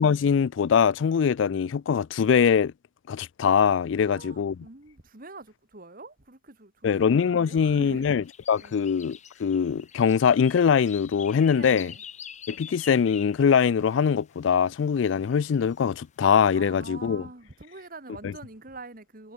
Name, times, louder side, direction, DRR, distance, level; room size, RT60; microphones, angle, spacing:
voice 1, 0.0-2.7 3.1-4.6 6.8-11.9 12.5-17.3 18.2-18.3, left 7 dB, 70° left, 0.4 m, -22 dB
voice 2, 4.0-8.3 8.6-8.7 11.5-12.0 16.5-19.3, right 2 dB, 45° right, 2.2 m, -45 dB
sound 1, 8.2-14.1 15.0-15.8 16.3-16.6, left 8 dB, 35° left, 2.4 m, -46 dB
head